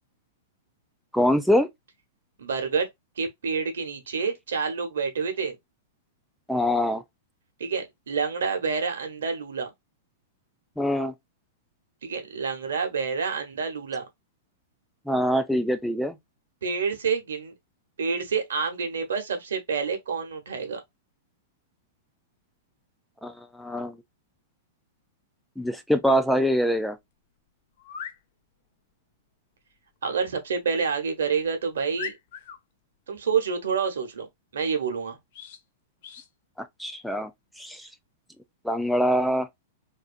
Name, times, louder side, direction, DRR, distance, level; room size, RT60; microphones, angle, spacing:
voice 1, 1.1-1.7 6.5-7.0 10.8-11.1 15.1-16.2 23.2-24.0 25.6-27.0 36.6-37.3 37.6-37.9 38.6-39.5, equal, ahead, 0.4 m, -24 dB
voice 2, 2.4-2.9 3.2-5.6 7.6-9.7 12.0-14.0 16.6-17.5 18.0-20.8 30.0-32.1 33.1-34.3 34.5-35.2, right 5 dB, 75° right, 0.8 m, -28 dB
sound 1, 26.9-27.0 27.8-28.2 30.7-30.9 31.4-31.5 32.0-32.6 35.3-35.6 36.0-36.3, left 8 dB, 55° left, 0.6 m, -39 dB
2.6 x 2.4 x 2.5 m
hypercardioid pair, 105°, 0 cm